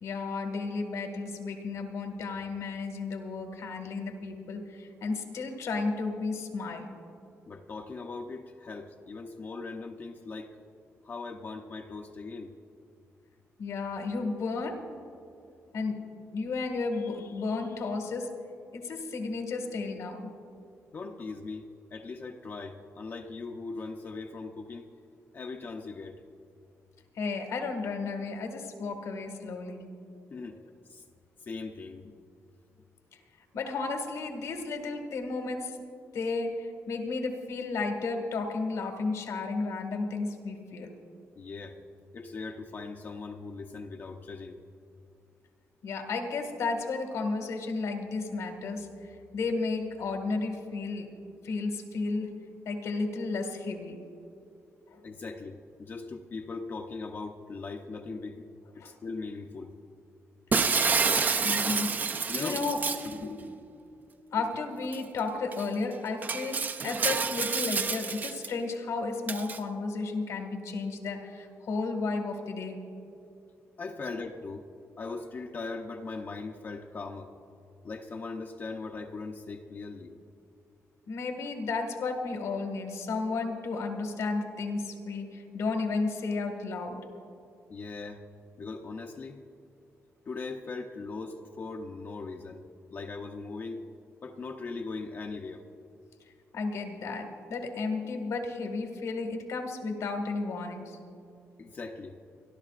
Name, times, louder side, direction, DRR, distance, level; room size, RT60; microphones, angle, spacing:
voice 1, 0.0-6.9 13.6-14.8 15.7-16.1 16.3-18.3 18.7-20.3 27.2-29.8 33.5-35.8 36.1-40.9 45.8-51.1 51.4-52.4 52.7-54.0 54.9-55.1 58.8-58.9 61.3-61.9 62.3-63.6 64.3-72.8 81.1-87.0 96.5-101.0, left 3 dB, 75° left, 4 dB, 1.8 m, -33 dB
voice 2, 7.5-10.6 11.0-12.6 20.9-24.9 25.3-26.2 30.3-30.6 30.9-31.0 31.4-32.1 41.4-41.8 42.1-44.6 55.0-59.8 62.3-62.6 73.8-74.7 75.0-77.3 77.8-80.2 87.7-88.3 88.6-89.4 90.3-93.9 94.2-95.7 101.6-102.2, left 3 dB, 40° left, 3 dB, 0.7 m, -39 dB
Shatter, 60.5-63.1 64.9-65.0 65.5-65.6 66.2-68.5 69.3-69.6, right 5 dB, 35° right, 0.5 m, -28 dB
30.0 x 12.0 x 2.5 m, 2.6 s
wide cardioid pair, 160°, 5 cm